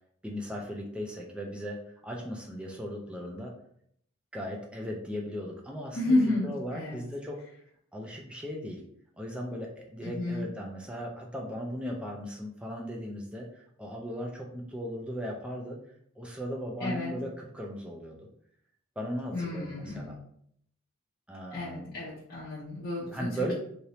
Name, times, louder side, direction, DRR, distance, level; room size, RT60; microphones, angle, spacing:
voice 1, 0.2-3.5 4.3-7.4 7.9-8.8 9.2-15.8 16.2-18.2 19.0-20.2 21.3-22.0 23.1-23.5, equal, 5° right, 0 dB, 0.4 m, -37 dB
voice 2, 5.9-7.1 10.0-10.5 16.8-17.1 19.3-20.2 21.5-23.5, left 2 dB, 45° left, -8 dB, 0.6 m, -31 dB
2.8 x 2.6 x 3.2 m, 0.68 s
head